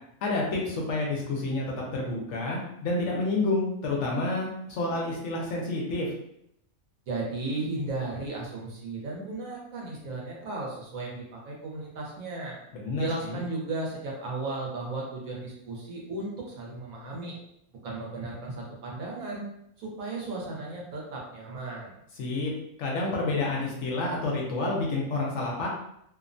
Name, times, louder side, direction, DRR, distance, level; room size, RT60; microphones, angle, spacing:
voice 1, 0.2-1.7 1.9-6.1 12.7-13.4 22.2-22.5 22.8-25.7, left 2 dB, 65° left, -2 dB, 0.9 m, -29 dB
voice 2, 7.1-12.6 12.9-17.4 17.8-19.4 19.8-21.9, right 2 dB, 75° right, -2 dB, 1.2 m, -35 dB
2.8 x 2.1 x 2.5 m, 0.76 s
omnidirectional pair, 1.4 m